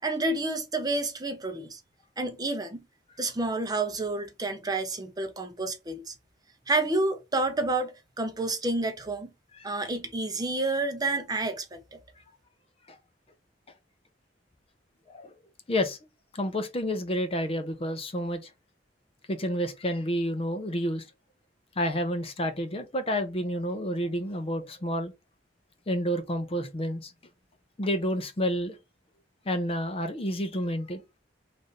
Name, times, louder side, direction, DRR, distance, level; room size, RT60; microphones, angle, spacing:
voice 1, 0.0-1.8 2.2-2.8 3.2-6.1 6.7-9.3 9.6-12.0, right 2 dB, 20° right, 0.7 m, -29 dB
voice 2, 16.3-18.5 19.3-21.0 21.8-25.1 25.9-27.1 27.8-28.8 29.5-31.0, equal, 30° left, 0.6 m, -29 dB
3.3 x 2.5 x 4.0 m
head